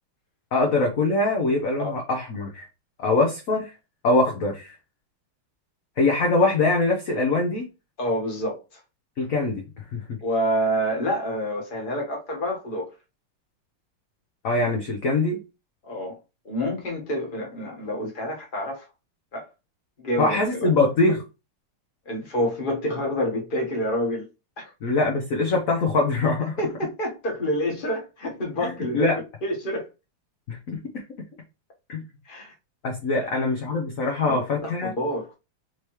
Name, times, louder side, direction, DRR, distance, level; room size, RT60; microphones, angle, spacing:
voice 1, 0.5-2.6 3.0-3.7 4.0-4.7 6.0-7.7 9.2-9.6 9.9-10.0 14.4-15.4 20.2-21.2 24.8-26.6 28.6-29.2 30.5-31.0 31.9-32.0 32.8-34.9, left 3 dB, 55° left, 1.0 m, -23 dB
voice 2, 8.0-8.6 10.2-12.9 15.8-16.2 16.4-18.8 19.3-19.4 20.0-20.7 22.1-24.3 24.6-24.7 26.6-29.9 32.3-32.5 33.1-33.3 34.2-35.4, equal, 30° left, 1.2 m, -28 dB
4.5 x 3.3 x 3.0 m
omnidirectional pair, 2.2 m